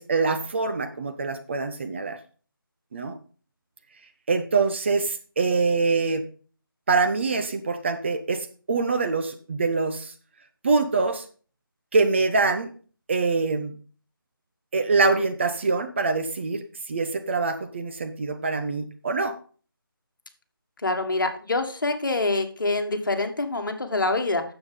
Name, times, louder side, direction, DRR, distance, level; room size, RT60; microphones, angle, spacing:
voice 1, 0.0-2.2 2.9-3.2 4.3-6.3 6.9-10.1 10.6-11.2 11.9-12.7 13.1-13.7 14.7-19.4, right 4 dB, 30° right, 7 dB, 0.8 m, -24 dB
voice 2, 20.8-24.4, left 2 dB, 60° left, 5 dB, 1.7 m, -25 dB
9.4 x 7.3 x 3.8 m, 0.39 s
figure-of-eight pair, 160°, 12 cm